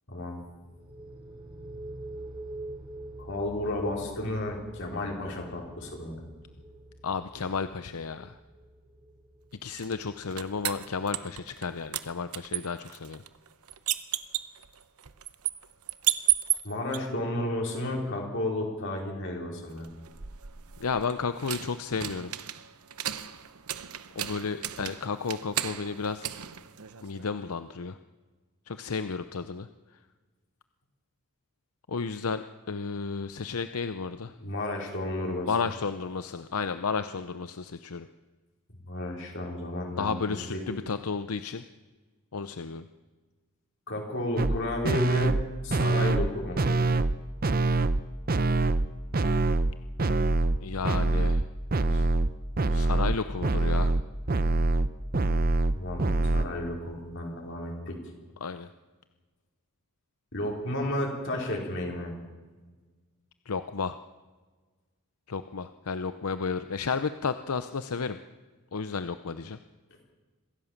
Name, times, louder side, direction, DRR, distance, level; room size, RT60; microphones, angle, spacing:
voice 1, 0.1-0.4 3.2-6.2 16.6-19.9 34.4-35.5 38.9-40.6 43.9-46.7 55.7-58.0 60.3-62.1, left 1 dB, 55° left, -1 dB, 4.9 m, -32 dB
sound 1, 0.5-12.1, right 1 dB, 25° right, 4.3 m, -46 dB
voice 2, 7.0-8.4 9.6-13.2 20.8-22.3 24.2-26.3 27.0-28.0 28.7-29.7 31.9-34.3 35.4-38.1 40.0-41.6 42.3-42.9 50.6-51.4 51.9-52.1 52.7-53.9 58.4-58.7 63.5-64.0 65.3-68.2 68.7-69.6, left 5 dB, 85° left, 11 dB, 0.7 m, -32 dB
sound 2, 9.8-11.7 11.9-17.0 19.8-27.3, right 12 dB, 85° right, 1.0 m, -34 dB
sound 3, 44.4-44.6 44.8-45.4 45.7-46.3 46.6-47.2 47.4-48.0 48.3-48.9 49.1-49.7 50.0-50.6 50.8-51.4 51.7-52.3 52.6-56.4, right 2 dB, 40° right, 0.8 m, -24 dB
25.0 x 16.5 x 7.3 m, 1.3 s
head